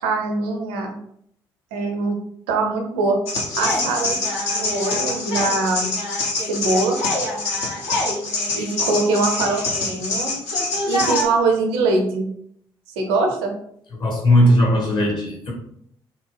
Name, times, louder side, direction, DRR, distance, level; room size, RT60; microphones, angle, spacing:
voice 1, 0.0-0.9 1.7-2.1 2.5-3.2 3.6-4.2 4.5-5.9 6.5-7.0 8.5-10.4 10.9-12.3 13.0-13.5, right 3 dB, 70° right, 0.5 m, -22 dB
sound 1, 3.3-11.3, left 2 dB, 65° left, 0.7 m, -24 dB
voice 2, 14.0-15.5, equal, 40° left, 1.0 m, -17 dB
2.7 x 2.0 x 3.2 m
figure-of-eight pair, 40°, 12 cm